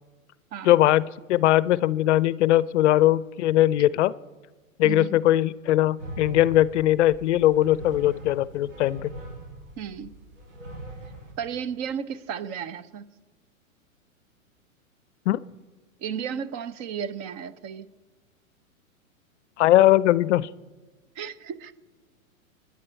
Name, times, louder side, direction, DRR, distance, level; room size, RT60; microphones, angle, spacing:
voice 1, 0.6-4.1 4.8-9.1 15.3-15.4 19.6-20.5, left 14 dB, 55° left, 20 dB, 0.5 m, -20 dB
voice 2, 4.8-5.2 9.8-10.1 11.4-13.0 16.0-17.9 21.2-21.7, right 7 dB, 35° right, 15 dB, 0.8 m, -33 dB
sound 1, 6.0-11.3, right 1 dB, 65° right, 5.9 m, -41 dB
25.5 x 10.5 x 4.5 m, 1.3 s
hypercardioid pair, 115°, 42 cm